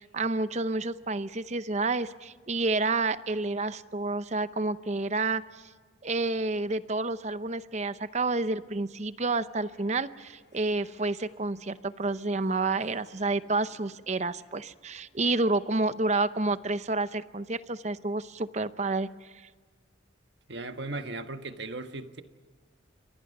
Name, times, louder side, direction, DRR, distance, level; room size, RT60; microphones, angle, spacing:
voice 1, 0.0-5.6 6.0-19.3, right 3 dB, 35° right, 0.7 m, -29 dB
Harp, 9.4-17.7, left 2 dB, 75° left, 5.5 m, -64 dB
voice 2, 20.5-22.2, right 2 dB, 65° right, 1.5 m, -37 dB
29.0 x 24.5 x 5.5 m
head